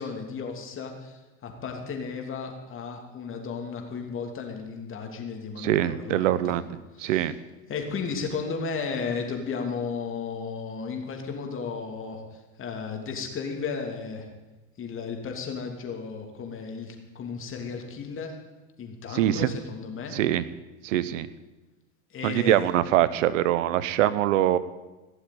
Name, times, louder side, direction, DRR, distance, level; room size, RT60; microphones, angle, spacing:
voice 1, 0.0-6.5 6.9-7.3 7.7-14.3 14.8-18.3 18.8-20.2 22.1-22.6, left 5 dB, 35° left, 2 dB, 3.0 m, -34 dB
voice 2, 5.6-6.6 7.0-7.3 19.1-19.5 20.1-20.4 20.8-21.3 22.2-24.6, right 12 dB, 80° right, 16 dB, 1.0 m, -23 dB
16.5 x 7.1 x 9.3 m, 1.1 s
supercardioid pair, 110°, 38 cm